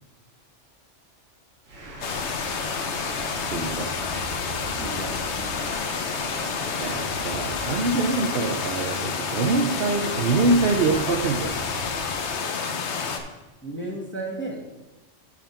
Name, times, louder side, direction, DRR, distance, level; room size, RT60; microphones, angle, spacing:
sound 1, 1.7-12.2, right 1 dB, 90° right, 1.9 m, -40 dB
sound 2, 2.0-13.2, left 5 dB, 65° left, 1.1 m, -29 dB
voice 1, 3.5-3.9 6.8-11.6, right 3 dB, 55° right, 2 dB, 0.9 m, -24 dB
voice 2, 4.8-5.9 13.6-14.6, right 2 dB, 10° left, -3 dB, 1.4 m, -34 dB
10.0 x 4.1 x 5.7 m, 1.1 s
omnidirectional pair, 1.3 m